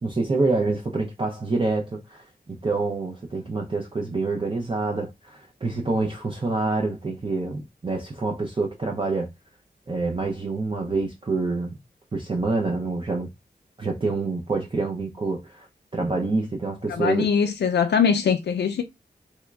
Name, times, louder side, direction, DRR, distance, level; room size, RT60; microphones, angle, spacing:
voice 1, 0.0-9.3 9.9-11.7 12.1-13.3 13.8-15.7 15.9-17.3, right 3 dB, 30° right, 0.5 m, -27 dB
voice 2, 16.9-18.8, left 6 dB, 85° left, 0.4 m, -22 dB
3.5 x 3.0 x 2.3 m
wide cardioid pair, 115°, 17 cm